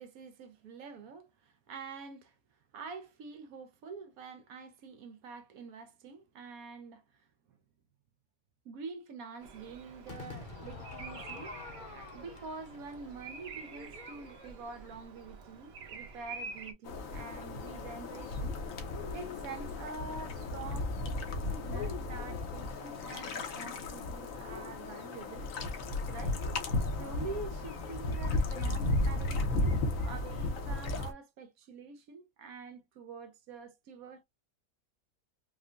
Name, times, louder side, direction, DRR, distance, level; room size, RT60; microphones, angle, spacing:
voice 1, 0.0-2.3 2.7-7.3 8.6-11.5 11.9-18.6 19.1-21.0 21.5-25.5 26.1-26.4 26.9-34.2, right 4 dB, 75° right, 1.1 m, -46 dB
Bird vocalization bird call bird song, 9.4-16.7, right 4 dB, 50° right, 1.0 m, -48 dB
Crowd / Fireworks, 10.1-15.3, left 4 dB, 40° left, 0.9 m, -48 dB
sound 1, 16.9-31.1, left 2 dB, 65° left, 1.2 m, -34 dB
4.8 x 2.2 x 2.4 m
omnidirectional pair, 1.5 m